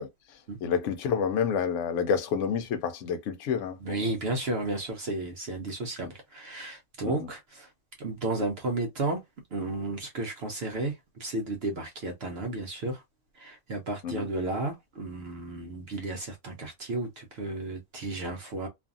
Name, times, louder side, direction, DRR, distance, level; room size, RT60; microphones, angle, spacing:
voice 1, 0.0-4.1 7.0-7.3 14.0-14.3, left 7 dB, 75° left, 0.9 m, -29 dB
voice 2, 3.8-7.7 8.0-9.2 9.5-10.9 11.2-13.0 13.4-18.7, right 2 dB, 60° right, 0.8 m, -33 dB
2.6 x 2.4 x 2.4 m
omnidirectional pair, 1.3 m